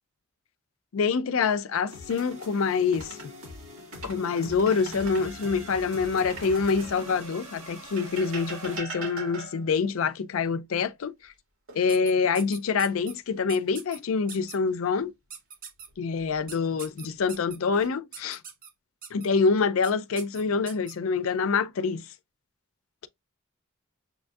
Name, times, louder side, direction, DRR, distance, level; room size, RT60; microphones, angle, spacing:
voice 1, 0.9-3.2 4.0-11.3 11.7-15.1 16.0-18.4 19.1-22.1, left 5 dB, 75° left, 0.4 m, -26 dB
sound 1, 1.9-8.8, equal, 65° right, 1.9 m, -43 dB
sound 2, 2.0-3.3 3.8-5.3 6.2-7.3 8.0-9.8 11.7-12.4 12.8-13.0 15.9-16.5 17.2-17.9, right 3 dB, 80° right, 2.0 m, -42 dB
sound 3, 11.9-13.1 13.5-14.0 14.3-14.6 15.3-15.9 16.5-17.6 18.1-18.7 19.0-19.3 19.8-19.9 20.2-20.9, right 6 dB, 45° right, 0.8 m, -42 dB
6.9 x 2.6 x 2.3 m
head